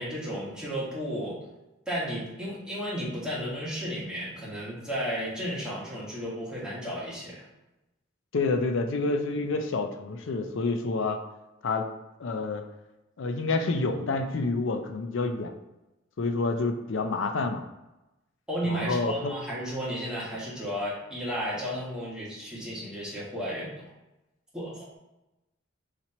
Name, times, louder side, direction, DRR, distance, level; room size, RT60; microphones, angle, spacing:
voice 1, 0.0-1.4 1.9-7.4 18.5-23.9 24.5-25.0, equal, 5° right, -7 dB, 1.3 m, -33 dB
voice 2, 8.3-11.2 11.6-11.8 12.2-12.6 13.2-15.5 16.2-17.6 18.6-19.3, left 3 dB, 65° left, 6 dB, 0.5 m, -28 dB
4.1 x 3.0 x 4.2 m, 0.97 s
head